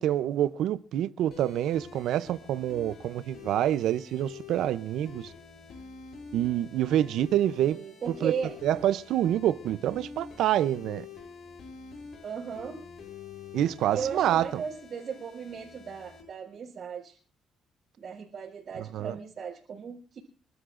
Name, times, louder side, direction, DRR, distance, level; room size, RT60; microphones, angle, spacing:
voice 1, 0.0-5.3 6.3-7.8 8.2-8.3 8.6-11.1 13.5-14.6 18.9-19.1, right 12 dB, 85° right, 0.6 m, -27 dB
sound 1, 1.3-16.2, left 5 dB, 65° left, 7.7 m, -46 dB
voice 2, 7.6-8.5 12.2-12.8 13.9-17.2 18.0-20.2, right 6 dB, 60° right, 4.0 m, -36 dB
29.0 x 12.5 x 2.5 m
cardioid pair, 90°, 0 cm